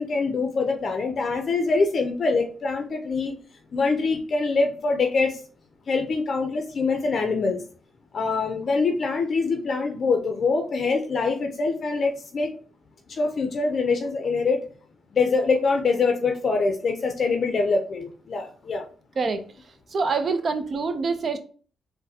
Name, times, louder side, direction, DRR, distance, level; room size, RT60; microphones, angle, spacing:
voice 1, 0.0-3.3 3.7-5.4 5.9-7.6 8.1-12.5 13.1-14.6 15.1-18.8, left 4 dB, 55° left, 4 dB, 0.5 m, -24 dB
voice 2, 19.9-21.4, right 4 dB, 50° right, 8 dB, 0.6 m, -25 dB
3.9 x 2.1 x 2.7 m, 0.41 s
cardioid pair, 65°, 0 cm